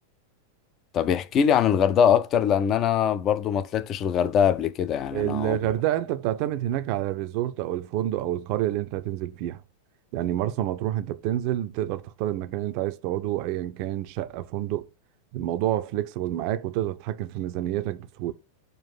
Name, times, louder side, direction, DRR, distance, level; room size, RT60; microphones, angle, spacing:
voice 1, 0.9-5.6, left 8 dB, 30° left, 0.5 m, -22 dB
voice 2, 5.1-9.6 10.1-14.9 15.3-18.3, right 13 dB, 45° right, 0.5 m, -28 dB
6.8 x 2.6 x 5.5 m
figure-of-eight pair, 90°, 0 cm